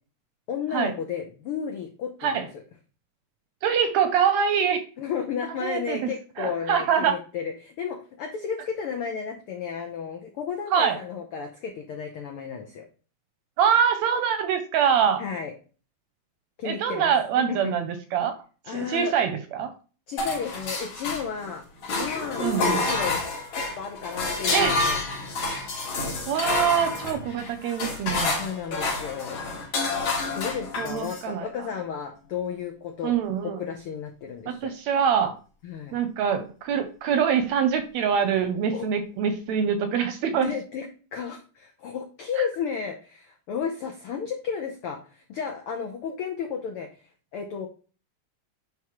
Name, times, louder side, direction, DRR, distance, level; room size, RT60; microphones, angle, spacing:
voice 1, 0.5-2.5 5.0-12.9 15.2-15.5 16.6-17.1 17.5-17.7 18.6-19.1 20.1-21.6 21.9-23.2 23.5-25.0 28.3-29.4 30.3-33.1 33.4-34.7 35.6-36.0 38.7-38.9 40.4-46.9 47.3-47.7, left 7 dB, 85° left, 3 dB, 1.2 m, -33 dB
voice 2, 3.6-4.8 5.6-6.1 6.4-7.2 10.7-11.0 13.6-15.2 16.6-18.3 18.7-19.7 22.4-22.8 24.5-24.8 26.3-28.4 30.8-31.4 33.0-33.6 34.5-35.3 35.9-40.5 42.4-42.5, right 7 dB, 75° right, 7 dB, 1.7 m, -24 dB
sound 1, 20.2-21.5 21.8-31.3, left 3 dB, 60° left, 3.7 m, -28 dB
10.5 x 3.6 x 3.0 m, 0.37 s
omnidirectional pair, 3.6 m